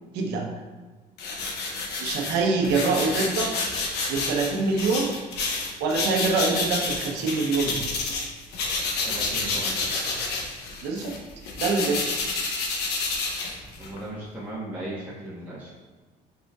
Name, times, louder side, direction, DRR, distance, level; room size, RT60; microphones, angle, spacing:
voice 1, 0.1-0.5 2.0-3.5 4.1-5.1 5.8-7.8 10.8-11.1 11.6-12.1, right 4 dB, 90° right, 1 dB, 0.8 m, -25 dB
sound 1, 1.2-8.3 8.5-14.0, left 3 dB, 80° left, 0.9 m, -29 dB
voice 2, 9.0-9.8 13.8-15.7, right 1 dB, 10° right, -9 dB, 1.0 m, -36 dB
5.4 x 4.3 x 2.3 m, 1.3 s
cardioid pair, 110°, 17 cm